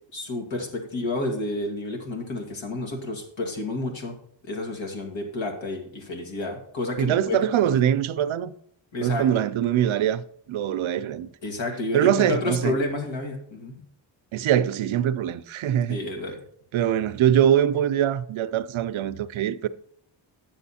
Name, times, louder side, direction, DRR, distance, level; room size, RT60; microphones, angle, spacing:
voice 1, 0.1-4.1 4.4-7.8 8.9-9.3 11.4-13.8 15.9-16.4, left 2 dB, 70° left, 2.4 m, -30 dB
voice 2, 7.0-8.5 9.0-10.2 10.5-11.3 11.9-12.8 14.3-16.0 16.7-19.7, right 10 dB, 75° right, 0.6 m, -23 dB
9.3 x 7.1 x 4.2 m
wide cardioid pair, 130°, 48 cm